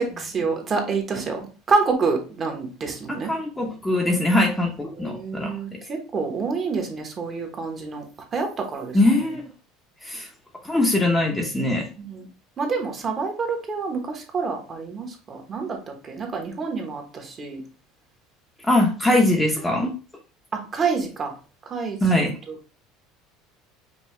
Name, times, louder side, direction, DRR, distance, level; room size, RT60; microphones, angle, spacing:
voice 1, 0.0-3.3 4.9-8.0 8.3-9.0 12.0-12.3 12.6-15.8 16.0-17.6 20.5-21.3 21.7-22.7, right 4 dB, 30° right, 3 dB, 1.1 m, -27 dB
voice 2, 3.1-5.5 8.9-9.4 10.0-10.3 10.6-11.9 18.7-19.9 22.0-22.3, left 1 dB, 10° left, 1 dB, 0.8 m, -21 dB
5.5 x 2.3 x 3.1 m, 0.35 s
supercardioid pair, 125°, 0 cm